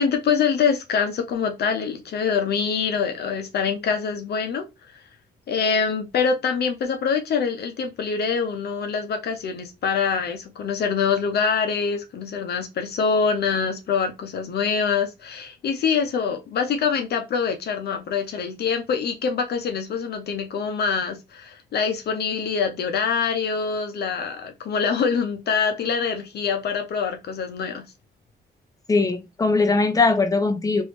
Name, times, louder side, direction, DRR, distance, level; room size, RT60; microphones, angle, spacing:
voice 1, 0.0-4.6 4.9-5.0 5.5-27.8, left 6 dB, 70° left, 0.8 m, -25 dB
voice 2, 28.9-30.8, left 3 dB, 20° left, 0.7 m, -20 dB
3.1 x 2.7 x 3.1 m
cardioid pair, 75°, 18 cm